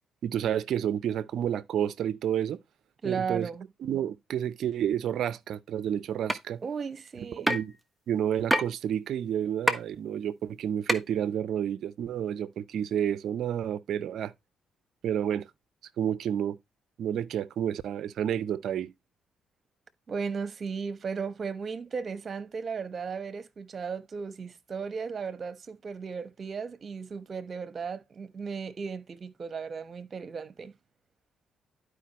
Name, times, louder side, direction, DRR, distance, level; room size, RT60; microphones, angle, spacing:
voice 1, 0.2-2.6 3.0-3.5 3.8-6.6 7.5-7.7 8.1-14.3 15.0-15.5 16.0-16.6 17.0-18.9, right 9 dB, 70° right, 0.6 m, -30 dB
voice 2, 3.0-3.7 6.6-7.5 20.1-30.7, right 5 dB, 50° right, 1.1 m, -35 dB
sound 1, 6.3-6.4 7.5-7.7 8.5-8.7 9.7-9.8 10.9-11.0, equal, ahead, 1.4 m, -24 dB
11.5 x 4.9 x 3.0 m
supercardioid pair, 55°, 0 cm